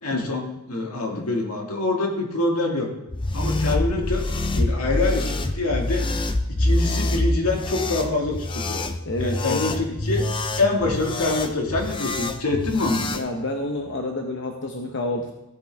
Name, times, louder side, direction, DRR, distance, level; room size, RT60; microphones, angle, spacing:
voice 1, 0.0-2.9 3.3-4.3 4.5-6.1 6.5-8.8 9.2-10.3 10.6-13.1, left 2 dB, 85° left, 1 dB, 2.0 m, -25 dB
sound 1, 3.1-13.2, left 2 dB, 20° left, 0.5 m, -26 dB
voice 2, 9.0-9.9 13.1-15.3, left 2 dB, 55° left, 3 dB, 0.9 m, -29 dB
16.0 x 8.0 x 3.5 m, 0.92 s
head